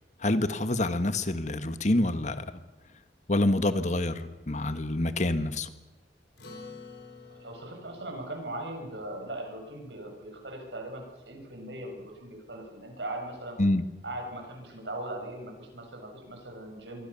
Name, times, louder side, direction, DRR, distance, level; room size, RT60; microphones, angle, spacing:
voice 1, 0.2-2.6 3.3-5.7 13.6-13.8, left 1 dB, 45° left, 11 dB, 1.4 m, -27 dB
Acoustic guitar, 6.4-11.1, left 3 dB, 70° left, 6.4 m, -51 dB
voice 2, 7.3-13.6 14.0-17.1, right 1 dB, 85° right, 2 dB, 7.3 m, -39 dB
26.5 x 23.0 x 7.0 m, 1.1 s
head